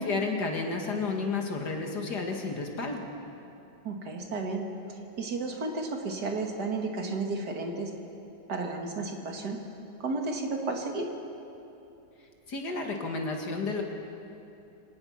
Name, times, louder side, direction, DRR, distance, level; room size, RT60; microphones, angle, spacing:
voice 1, 0.0-3.0 12.5-13.8, left 3 dB, 70° left, 2 dB, 2.6 m, -31 dB
voice 2, 3.8-7.9 8.5-9.6 10.0-11.1, right 3 dB, 70° right, 2 dB, 2.5 m, -33 dB
25.5 x 18.0 x 5.8 m, 2.8 s
omnidirectional pair, 1.8 m